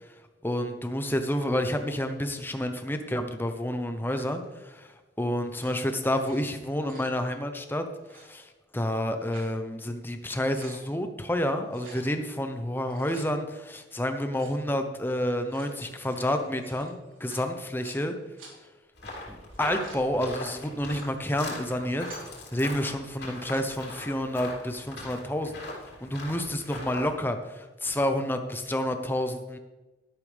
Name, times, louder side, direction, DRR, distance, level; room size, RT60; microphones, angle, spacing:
voice 1, 0.4-4.9 5.2-7.9 8.1-18.2 19.3-22.1 22.5-25.5 26.0-29.6, left 1 dB, 10° left, 7 dB, 0.8 m, -29 dB
sound 1, 4.1-4.5 5.5-6.4 6.7-7.1 8.0-8.3 8.9-9.6 10.0-10.1 10.3-10.8 11.7-12.1 12.7-13.3 14.3-14.6 15.3-18.0 18.4-18.5 19.4-20.0 20.6-21.1 21.7-22.3 23.2-23.6, right 3 dB, 85° right, 3.5 m, -50 dB
sound 2, 19.0-27.1, left 2 dB, 55° left, 3.3 m, -40 dB
12.0 x 11.5 x 3.5 m, 1.2 s
head